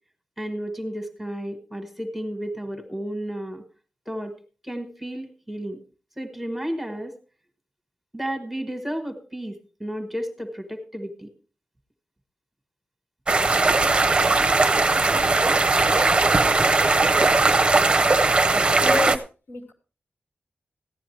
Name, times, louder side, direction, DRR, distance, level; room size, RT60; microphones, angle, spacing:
voice 1, 0.4-3.6 4.1-4.3 4.6-5.8 6.2-7.1 8.1-11.3, equal, 5° right, 6 dB, 1.4 m, -32 dB
sound 1, 13.3-19.2, right 3 dB, 30° right, 0.6 m, -19 dB
voice 2, 18.8-19.7, left 2 dB, 70° left, 2 dB, 2.3 m, -29 dB
15.0 x 10.0 x 3.2 m, 0.35 s
wide cardioid pair, 130°, 3 cm